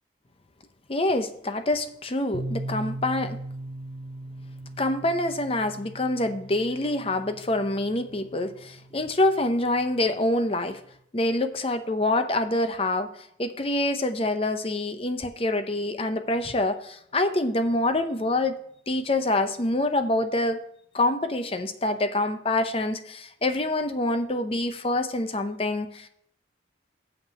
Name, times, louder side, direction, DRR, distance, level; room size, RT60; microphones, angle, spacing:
voice 1, 0.9-3.4 4.8-10.8 11.1-13.1 13.4-18.6 18.9-20.6 20.9-26.1, left 2 dB, 30° left, 9 dB, 0.6 m, -26 dB
sound 1, 2.3-10.0, right 1 dB, 70° right, 1.9 m, -39 dB
7.4 x 5.5 x 6.9 m, 0.69 s
head